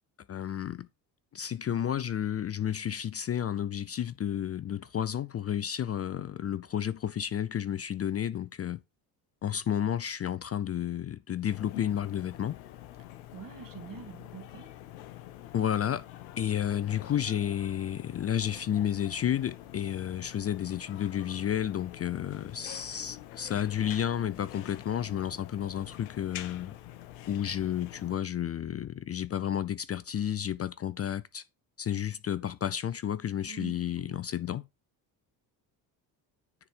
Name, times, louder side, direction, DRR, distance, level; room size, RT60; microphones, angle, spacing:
voice 1, 0.3-0.9 1.3-8.8 9.4-12.6 15.5-16.1 16.4-26.7 27.3-31.4 31.8-34.7, left 10 dB, 30° left, 0.5 m, -31 dB
sound 1, 11.5-28.2, left 13 dB, 80° left, 1.1 m, -46 dB
voice 2, 13.3-14.7 33.5-34.2, right 7 dB, 40° right, 2.2 m, -45 dB
9.8 x 4.3 x 5.1 m
hypercardioid pair, 60°, 50 cm